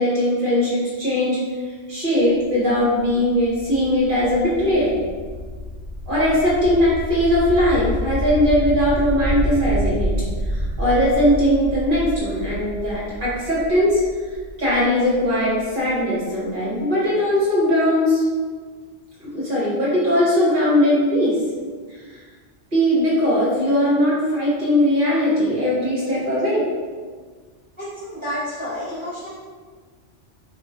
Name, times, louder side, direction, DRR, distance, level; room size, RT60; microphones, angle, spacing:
voice 1, 0.0-1.4 1.9-5.0 6.1-10.1 10.5-14.0 14.6-18.2 19.2-21.4 22.7-26.6, left 1 dB, 45° right, -8 dB, 1.1 m, -19 dB
sound 1, 2.2-15.9, equal, 50° left, 0.8 m, -28 dB
voice 2, 27.8-29.3, equal, 25° right, -14 dB, 1.2 m, -30 dB
3.0 x 2.4 x 2.4 m, 1.5 s
omnidirectional pair, 1.3 m